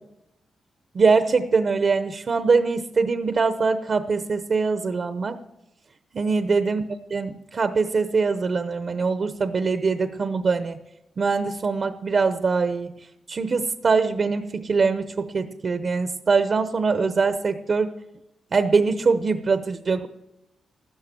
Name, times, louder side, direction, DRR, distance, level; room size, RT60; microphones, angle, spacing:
voice 1, 0.9-5.4 6.1-10.8 11.2-12.9 13.3-17.9 18.5-20.1, right 4 dB, 50° right, 10 dB, 0.8 m, -23 dB
14.5 x 13.0 x 7.5 m, 0.93 s
cardioid pair, 70°, 0 cm